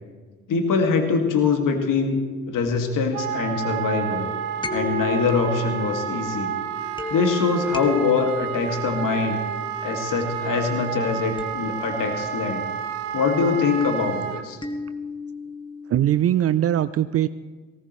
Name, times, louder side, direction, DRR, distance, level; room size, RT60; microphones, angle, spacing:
voice 1, 0.5-2.2 2.5-4.3 4.7-6.5 7.1-9.4 9.8-12.6 13.1-14.6, left 5 dB, 55° left, 4 dB, 2.2 m, -23 dB
sound 1, 1.7-3.7 4.6-10.4 11.4-12.7 14.6-16.2, left 5 dB, 15° left, 1.7 m, -35 dB
Wind instrument woodwind instrument, 3.1-14.4, right 8 dB, 80° right, 0.9 m, -30 dB
voice 2, 15.9-17.3, right 11 dB, 40° right, 14 dB, 0.5 m, -21 dB
19.0 x 17.5 x 3.2 m, 1.4 s
hypercardioid pair, 45°, 38 cm